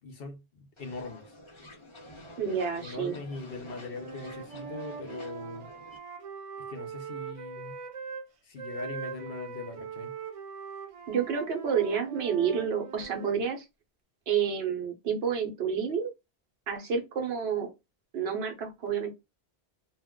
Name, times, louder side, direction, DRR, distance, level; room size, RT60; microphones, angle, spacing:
voice 1, 0.0-1.4 2.8-5.7 6.7-7.8 8.4-10.1, left 3 dB, 65° left, 0.9 m, -41 dB
sound 1, 0.8-6.0, left 1 dB, 30° left, 0.9 m, -49 dB
voice 2, 2.4-3.2 11.1-13.6 14.3-16.1 16.7-17.7 18.1-19.1, right 7 dB, 70° right, 0.9 m, -29 dB
Wind instrument woodwind instrument, 3.9-8.3 8.6-13.4, right 5 dB, 45° right, 0.5 m, -41 dB
2.5 x 2.1 x 3.5 m
omnidirectional pair, 1.1 m